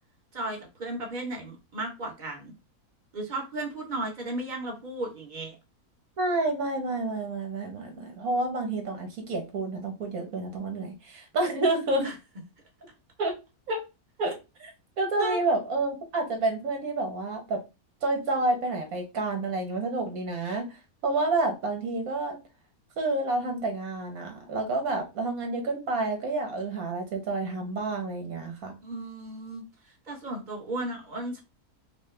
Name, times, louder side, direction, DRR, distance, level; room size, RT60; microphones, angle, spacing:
voice 1, 0.3-2.5 3.1-5.6 12.0-12.1 15.2-15.4 28.8-29.6 30.1-31.4, right 2 dB, 35° right, 0 dB, 1.2 m, -34 dB
voice 2, 6.2-12.1 13.2-13.3 13.7-13.8 14.2-14.3 14.6-14.7 15.0-17.6 18.0-20.7 21.0-22.4 23.0-28.8, right 2 dB, 70° right, 3 dB, 1.6 m, -29 dB
4.9 x 2.1 x 3.3 m, 0.27 s
omnidirectional pair, 1.6 m